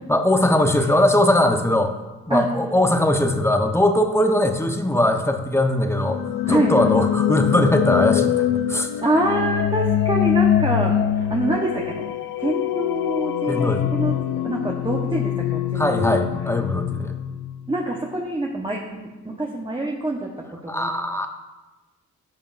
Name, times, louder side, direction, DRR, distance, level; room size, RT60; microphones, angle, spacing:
voice 1, 0.1-1.9 2.3-6.2 6.5-8.9 13.5-13.9 15.7-17.2 20.7-21.3, left 1 dB, 10° left, 5 dB, 1.0 m, -20 dB
sound 1, 5.9-17.9, left 11 dB, 90° left, 0.5 m, -23 dB
voice 2, 6.4-7.0 9.0-12.1 12.4-14.2 14.4-16.2 17.7-20.3 20.6-20.9, right 2 dB, 15° right, -1 dB, 1.1 m, -25 dB
11.0 x 6.8 x 2.6 m, 1.2 s
supercardioid pair, 50°, 31 cm